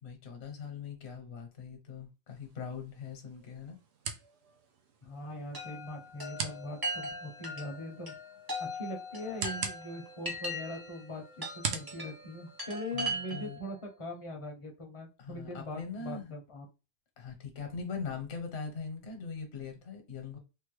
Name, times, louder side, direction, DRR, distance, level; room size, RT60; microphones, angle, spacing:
voice 1, 0.0-3.8 12.9-13.6 15.2-16.3 17.2-20.4, left 5 dB, 65° left, 1.1 m, -41 dB
sound 1, 2.3-13.2, right 6 dB, 65° right, 0.8 m, -44 dB
voice 2, 5.0-8.1 8.6-16.7, left 1 dB, 30° left, 0.7 m, -41 dB
Chime, 5.5-13.7, equal, 20° right, 0.7 m, -40 dB
3.4 x 2.2 x 3.1 m
omnidirectional pair, 1.3 m